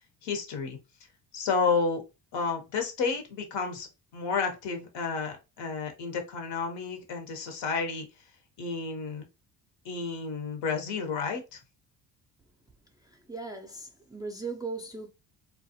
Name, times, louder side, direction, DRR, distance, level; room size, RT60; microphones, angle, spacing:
voice 1, 0.2-0.8 1.3-2.0 2.3-3.9 4.1-8.1 8.6-9.2 9.8-11.6, left 5 dB, 70° left, 1.0 m, -31 dB
voice 2, 13.0-15.1, right 3 dB, 10° right, 0.4 m, -38 dB
2.3 x 2.0 x 2.7 m
supercardioid pair, 60°, 45 cm